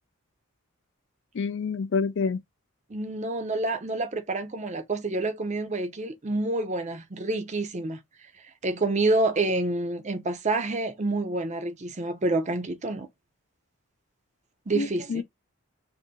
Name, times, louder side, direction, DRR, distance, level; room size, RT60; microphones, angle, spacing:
voice 1, 1.3-2.4 14.7-15.2, left 5 dB, 55° left, 0.4 m, -28 dB
voice 2, 2.9-8.0 8.6-13.1 14.7-15.2, right 2 dB, 30° right, 0.5 m, -28 dB
2.7 x 2.6 x 3.7 m
head